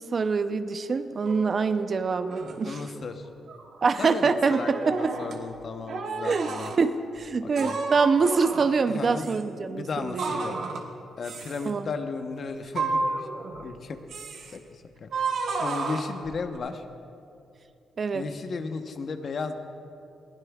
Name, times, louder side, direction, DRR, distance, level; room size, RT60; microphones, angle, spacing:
voice 1, 0.1-2.8 3.8-5.1 6.2-6.5 6.8-10.3 11.6-11.9 18.0-18.2, right 4 dB, 50° right, 10 dB, 0.6 m, -25 dB
sound 1, 1.2-1.6 2.2-2.6 3.2-3.8 4.5-5.4 5.9-6.8 7.5-8.8 9.2-9.4 10.2-10.9 11.2-11.7 12.7-13.7 14.1-14.6 15.1-16.6, right 3 dB, 70° right, 1.1 m, -32 dB
voice 2, 2.6-3.3 4.0-6.7 7.6-7.8 8.8-9.3 9.6-10.5 11.2-13.0 13.6-14.0 14.5-16.8 18.1-19.6, left 4 dB, 55° left, 7 dB, 0.9 m, -35 dB
21.0 x 15.5 x 2.4 m, 2.6 s
cardioid pair, 70°, 0 cm